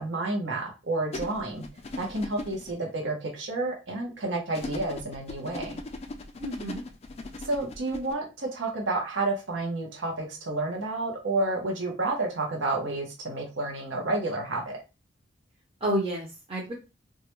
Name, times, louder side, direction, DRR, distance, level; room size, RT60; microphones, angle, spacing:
voice 1, 0.0-1.6 1.9-5.8 7.4-14.8, right 2 dB, 75° right, 0 dB, 0.7 m, -30 dB
sound 1, 1.1-2.7 4.5-8.1, left 2 dB, 35° left, 0.3 m, -38 dB
voice 2, 6.4-6.8 15.8-16.7, right 1 dB, 30° right, -4 dB, 0.6 m, -30 dB
2.3 x 2.1 x 2.9 m, 0.28 s
head